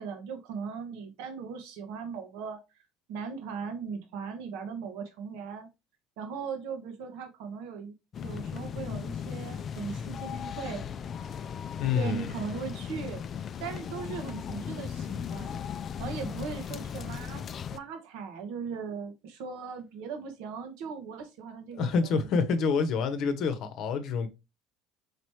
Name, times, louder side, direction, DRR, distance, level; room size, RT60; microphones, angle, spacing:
voice 1, 0.0-2.6 3.1-5.7 6.2-7.9 8.2-10.8 11.9-13.2 13.6-15.6 16.0-17.4 17.7-22.1, right 6 dB, 70° right, 1.0 m, -38 dB
sound 1, 8.1-17.8, left 7 dB, 45° left, 0.4 m, -37 dB
voice 2, 11.8-12.3 21.7-24.3, left 5 dB, 60° left, 0.8 m, -27 dB
4.9 x 3.1 x 3.0 m
hypercardioid pair, 70°, 0 cm